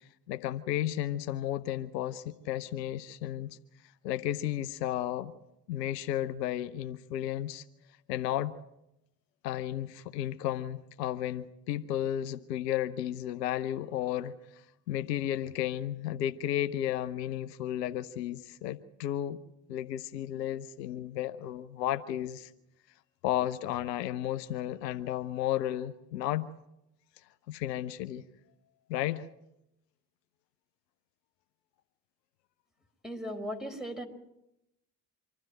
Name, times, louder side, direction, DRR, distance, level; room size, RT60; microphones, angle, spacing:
voice 1, 0.3-3.5 4.0-5.3 5.7-7.6 8.1-8.6 9.4-19.4 19.7-22.5 23.2-26.5 27.5-28.2 28.9-29.3, left 12 dB, 80° left, 12 dB, 0.9 m, -33 dB
voice 2, 33.0-34.1, equal, ahead, 3 dB, 4.7 m, -37 dB
25.5 x 13.0 x 9.1 m, 0.86 s
hypercardioid pair, 50°, 48 cm